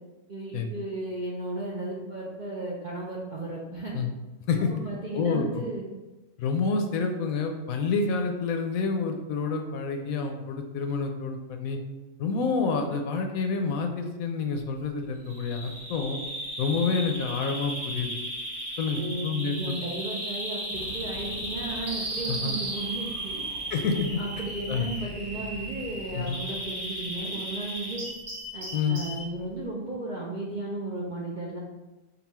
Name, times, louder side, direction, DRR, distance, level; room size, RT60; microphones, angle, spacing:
voice 1, 0.3-4.0 4.7-5.8 18.9-23.4 24.2-28.1 28.5-31.6, right 2 dB, 55° right, -4 dB, 0.5 m, -35 dB
voice 2, 5.1-5.6 6.4-11.8 12.2-16.2 16.6-18.1 18.8-19.8 22.3-22.5 23.7-24.2 24.7-24.8 26.1-26.4 28.7-29.0, left 4 dB, 70° left, 5 dB, 1.0 m, -28 dB
Bird vocalization bird call bird song, 15.3-29.3, right 1 dB, 70° right, 1.8 m, -35 dB
sound 1, 20.7-28.8, equal, 30° left, 0.8 m, -47 dB
5.4 x 2.4 x 4.2 m, 1.1 s
omnidirectional pair, 1.6 m